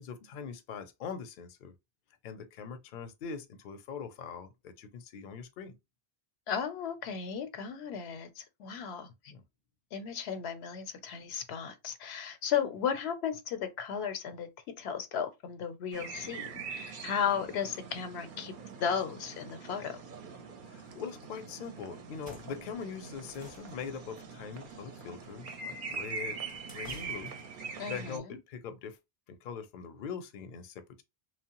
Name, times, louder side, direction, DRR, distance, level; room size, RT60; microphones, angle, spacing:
voice 1, 0.0-1.7 2.2-5.7 9.3-9.4 20.7-26.4 26.7-27.3 27.9-29.0 29.3-31.0, left 6 dB, 60° left, 0.6 m, -42 dB
voice 2, 6.5-9.1 9.9-14.5 14.8-18.5 18.8-20.0 27.8-28.4, left 7 dB, 90° left, 0.8 m, -35 dB
sound 1, 15.9-28.2, right 5 dB, 60° right, 0.6 m, -43 dB
sound 2, 22.1-27.7, left 1 dB, 10° left, 0.5 m, -55 dB
3.0 x 2.0 x 2.8 m
omnidirectional pair, 1.1 m